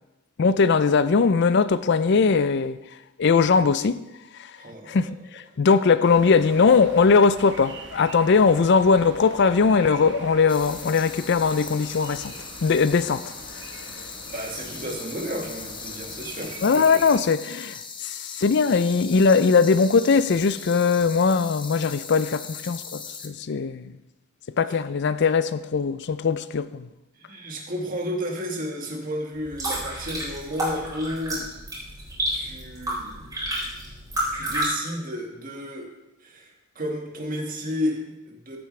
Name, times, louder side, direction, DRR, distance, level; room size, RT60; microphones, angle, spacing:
voice 1, 0.4-2.8 3.2-4.0 4.4-4.5 4.9-12.3 12.6-13.6 16.6-23.9 24.6-26.9, left 5 dB, 55° left, 0.4 m, -20 dB
voice 2, 4.6-5.1 14.2-16.6 27.2-31.4 32.3-33.3 34.3-35.9 36.2-38.6, equal, 40° right, 1.8 m, -32 dB
sound 1, 6.0-17.2, right 3 dB, 60° right, 1.2 m, -43 dB
sound 2, 10.5-23.3, left 5 dB, 25° left, 0.8 m, -39 dB
sound 3, 29.3-34.7, right 1 dB, 20° right, 4.0 m, -30 dB
15.0 x 8.3 x 3.3 m
head